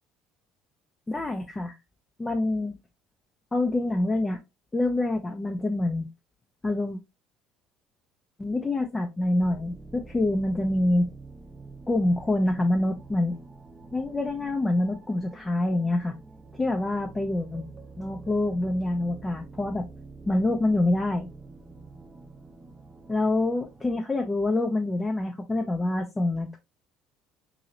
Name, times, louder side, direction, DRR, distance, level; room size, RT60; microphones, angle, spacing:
voice 1, 1.1-1.7 2.2-2.7 3.5-4.4 4.7-6.1 6.6-7.0 8.4-11.1 11.9-13.4 13.9-16.1 16.5-17.7 18.0-19.9 20.3-21.3 23.1-26.6, left 2 dB, 20° left, 0.6 m, -26 dB
sound 1, 9.4-24.0, right 3 dB, 20° right, 0.8 m, -47 dB
4.7 x 2.7 x 2.8 m
figure-of-eight pair, 60°, 0 cm